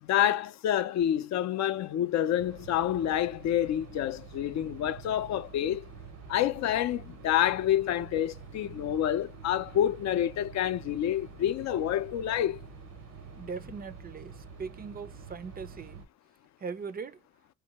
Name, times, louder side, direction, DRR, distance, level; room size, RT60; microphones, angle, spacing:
voice 1, 0.0-5.9 6.3-12.6, left 11 dB, 65° left, 0.4 m, -28 dB
sound 1, 2.4-16.1, right 5 dB, 65° right, 0.7 m, -47 dB
voice 2, 13.4-16.1 16.6-17.2, right 5 dB, 30° right, 0.4 m, -40 dB
2.7 x 2.2 x 2.8 m
cardioid pair, 90°, 30 cm